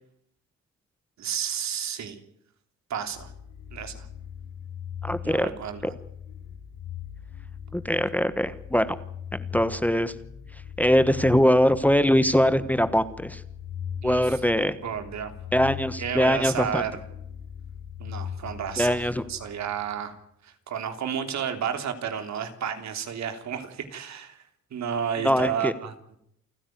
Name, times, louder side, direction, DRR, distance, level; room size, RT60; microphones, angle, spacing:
voice 1, 1.2-2.2 2.9-3.3 3.7-4.1 5.2-5.9 14.0-14.4 14.8-15.3 16.0-17.0 18.0-20.2 20.4-24.4 24.7-25.9, right 8 dB, 65° right, 7 dB, 3.2 m, -32 dB
sound 1, 3.1-20.0, left 8 dB, 75° left, 2.9 m, -40 dB
voice 2, 5.0-5.5 7.7-9.0 9.3-10.1 10.8-13.4 14.0-14.7 15.5-16.8 18.8-19.2 25.2-25.7, equal, 5° left, 12 dB, 1.3 m, -22 dB
29.0 x 9.9 x 9.4 m, 0.75 s
cardioid pair, 90°, 30 cm